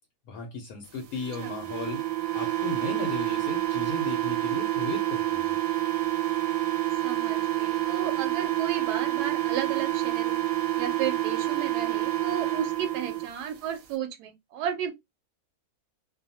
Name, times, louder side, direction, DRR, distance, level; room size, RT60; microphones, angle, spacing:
voice 1, 0.3-2.1 2.3-5.6, left 5 dB, 70° left, 1.0 m, -36 dB
sound 1, 1.2-13.3, right 14 dB, 65° right, 0.9 m, -28 dB
voice 2, 7.0-10.4 10.8-14.9, right 8 dB, 85° right, 1.1 m, -34 dB
2.6 x 2.2 x 2.7 m
omnidirectional pair, 1.7 m